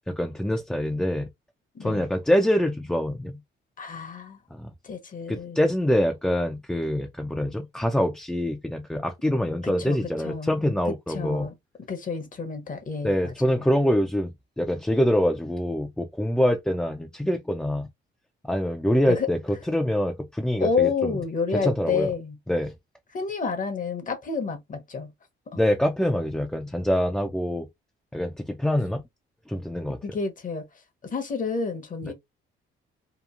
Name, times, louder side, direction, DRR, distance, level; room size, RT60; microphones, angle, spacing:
voice 1, 0.1-1.3 1.8-3.4 4.5-4.7 5.3-11.5 13.0-14.3 14.6-17.9 18.4-21.2 21.5-22.1 22.5-22.7 25.6-27.7 28.1-29.0 29.5-30.0 32.0-32.1, equal, 5° left, 0.4 m, -25 dB
voice 2, 1.7-2.1 3.8-4.4 4.8-5.6 9.6-10.0 10.2-10.5 11.1-11.5 11.9-13.7 19.1-19.3 20.6-22.4 23.1-25.1 30.0-30.7 31.0-32.1, left 5 dB, 40° left, 0.8 m, -29 dB
2.9 x 2.4 x 2.4 m
cardioid pair, 90°, 20 cm